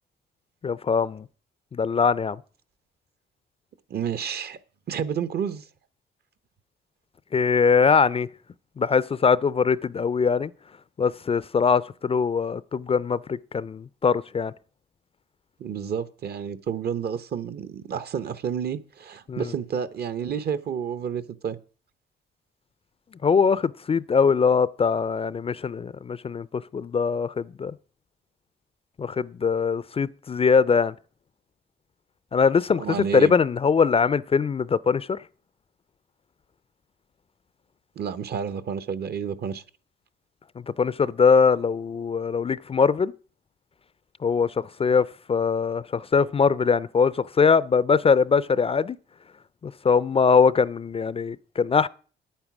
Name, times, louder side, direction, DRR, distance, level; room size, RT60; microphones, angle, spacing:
voice 1, 0.6-1.3 1.7-2.4 7.3-8.3 8.8-10.5 11.0-14.5 19.3-19.5 23.2-27.7 29.0-30.9 32.3-35.2 40.8-43.1 44.2-49.0 49.6-51.9, left 5 dB, 30° left, 0.4 m, -22 dB
voice 2, 3.9-4.6 4.9-5.7 15.6-21.6 32.8-33.3 38.0-39.6, right 7 dB, 55° right, 0.9 m, -30 dB
9.3 x 8.9 x 6.0 m
cardioid pair, 90°, 20 cm